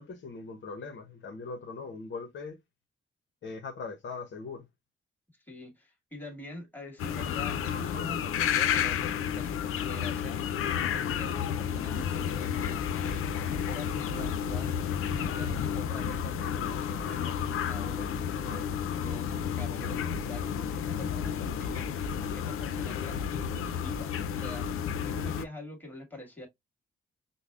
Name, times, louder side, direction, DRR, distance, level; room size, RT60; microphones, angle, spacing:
voice 1, 0.0-2.6 3.4-4.7, left 4 dB, 60° left, 0.8 m, -40 dB
voice 2, 5.5-26.5, left 1 dB, 10° left, 1.7 m, -45 dB
sound 1, 7.0-25.5, left 8 dB, 85° left, 0.5 m, -31 dB
5.2 x 2.0 x 2.3 m
cardioid pair, 95°, 21 cm